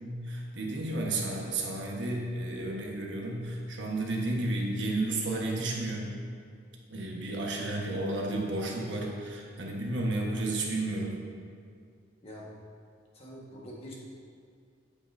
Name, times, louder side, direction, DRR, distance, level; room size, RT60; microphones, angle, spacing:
voice 1, 0.0-6.2 6.9-11.2, right 2 dB, 65° right, -1 dB, 1.2 m, -32 dB
voice 2, 13.1-13.9, equal, 30° left, -4 dB, 1.5 m, -45 dB
8.7 x 8.6 x 2.6 m, 2.3 s
head